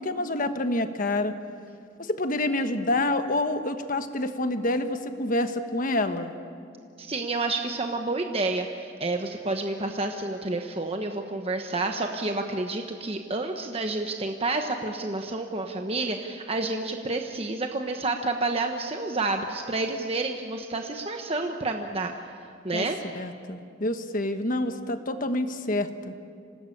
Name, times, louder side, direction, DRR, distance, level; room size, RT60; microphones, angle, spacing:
voice 1, 0.0-1.3 2.0-6.3 22.7-22.9 23.1-26.1, left 1 dB, 45° left, 8 dB, 1.3 m, -27 dB
voice 2, 7.0-22.1 22.6-23.0, right 2 dB, 30° right, 4 dB, 1.1 m, -29 dB
27.0 x 18.0 x 8.6 m, 2.4 s
head